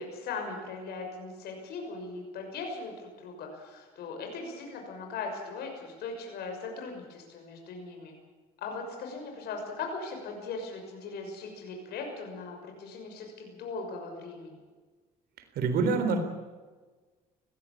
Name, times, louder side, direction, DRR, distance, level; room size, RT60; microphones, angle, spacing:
voice 1, 0.0-8.1 8.6-14.6, left 4 dB, 70° left, 2 dB, 6.1 m, -39 dB
voice 2, 15.6-16.2, right 4 dB, 70° right, 7 dB, 4.0 m, -25 dB
20.0 x 16.0 x 8.7 m, 1.3 s
cardioid pair, 110°, 17 cm